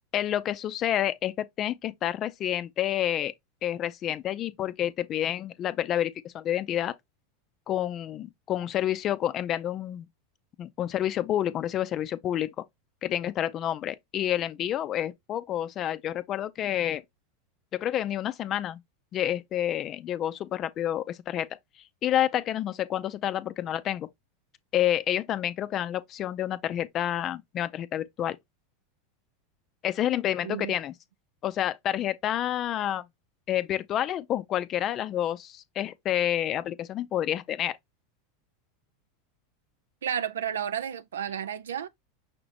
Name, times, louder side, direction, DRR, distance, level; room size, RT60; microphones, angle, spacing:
voice 1, 0.1-3.3 3.6-6.9 7.7-10.1 10.6-12.6 13.0-17.0 17.7-18.8 19.1-21.5 22.0-24.1 24.7-28.4 29.8-30.9 31.4-33.0 33.5-37.8, left 11 dB, 40° left, 0.5 m, -29 dB
voice 2, 30.4-30.7 40.0-41.9, right 9 dB, 90° right, 0.4 m, -32 dB
5.9 x 2.5 x 3.3 m
hypercardioid pair, 105°, 0 cm